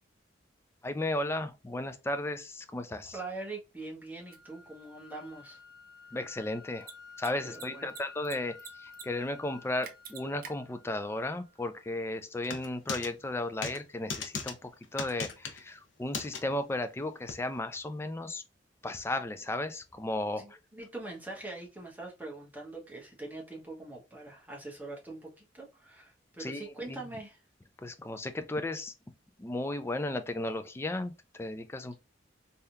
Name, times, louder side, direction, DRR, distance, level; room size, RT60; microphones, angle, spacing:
voice 1, 0.8-3.2 6.1-6.9 7.2-8.6 8.8-18.4 18.8-20.4 26.4-27.0 27.8-28.9 29.4-32.0, left 2 dB, 15° left, 0.3 m, -35 dB
voice 2, 3.1-5.6 7.4-7.9 20.4-27.4, right 2 dB, 10° right, 1.1 m, -43 dB
sound 1, 4.2-12.3, left 5 dB, 55° left, 1.2 m, -53 dB
Mechanisms, 4.3-4.4 6.7-6.9 7.2-7.3 7.5-8.3 8.6-9.0 9.3-9.4 9.8-10.5, right 7 dB, 50° right, 0.6 m, -44 dB
sound 2, 12.4-13.1 13.6-13.8 14.1-14.5 15.0-15.6 16.1-16.4 17.3-17.4, left 5 dB, 80° left, 0.7 m, -36 dB
3.5 x 2.8 x 2.2 m
head